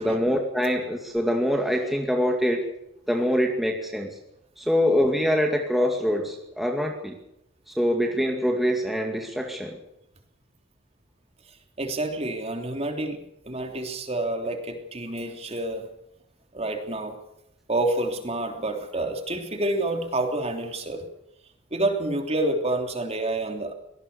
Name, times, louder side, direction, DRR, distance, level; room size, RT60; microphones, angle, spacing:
voice 1, 0.0-2.6 3.1-4.2 4.6-7.2 7.7-9.8, equal, ahead, 2 dB, 2.3 m, -24 dB
voice 2, 11.5-15.9 16.5-17.2 17.7-21.0 21.7-23.7, right 2 dB, 30° right, 4 dB, 3.2 m, -28 dB
24.5 x 18.5 x 6.9 m, 0.81 s
head